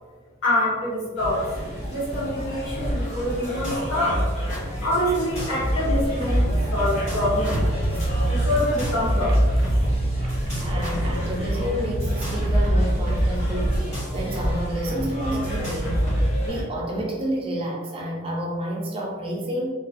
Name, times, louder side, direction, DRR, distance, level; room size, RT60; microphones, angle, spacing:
voice 1, 0.4-1.5 1.9-4.3 4.8-6.4 6.7-7.6 8.3-9.6, left 1 dB, 80° left, -8 dB, 1.1 m, -25 dB
sound 1, 1.2-16.6, equal, 35° left, 0.6 m, -31 dB
sound 2, 2.8-3.0 3.2-3.8 4.1-4.6 5.1-6.5 6.9-7.8 8.6-9.8 10.3-11.4 12.0-14.5 14.8-14.9 15.4-16.5, equal, 20° left, 1.0 m, -26 dB
sound 3, 6.3-13.8, right 2 dB, 85° right, 0.5 m, -28 dB
voice 2, 10.6-13.8 14.1-16.0 16.5-19.7, equal, 25° right, -1 dB, 0.4 m, -29 dB
2.4 x 2.3 x 2.4 m, 1.4 s
head